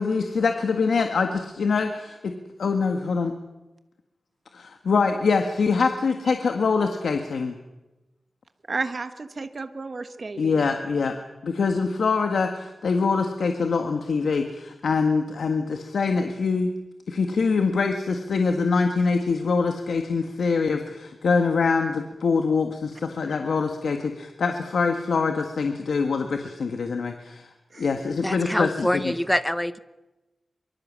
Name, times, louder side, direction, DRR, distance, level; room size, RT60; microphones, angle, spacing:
voice 1, 0.0-2.3 2.6-3.3 4.5-7.6 10.4-11.2 11.4-16.7 17.1-27.5 27.8-29.1, left 4 dB, 85° left, 5 dB, 1.7 m, -24 dB
voice 2, 8.7-10.6 27.7-27.8, right 3 dB, 45° right, 9 dB, 1.4 m, -32 dB
voice 3, 28.2-29.8, left 1 dB, 5° left, 13 dB, 0.9 m, -25 dB
24.0 x 23.5 x 7.5 m, 1.0 s
wide cardioid pair, 150°, 0 cm